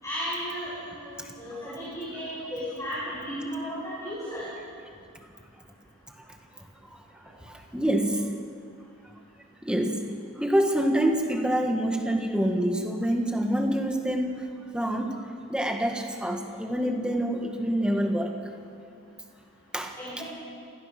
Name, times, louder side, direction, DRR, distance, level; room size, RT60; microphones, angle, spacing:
voice 1, 0.0-4.5 19.9-20.2, equal, 15° left, -9 dB, 6.7 m, -34 dB
voice 2, 7.5-8.3 9.6-10.0 10.4-14.5 14.7-18.4 19.7-20.2, right 1 dB, 5° right, 2 dB, 1.8 m, -26 dB
27.5 x 17.0 x 6.1 m, 2.3 s
head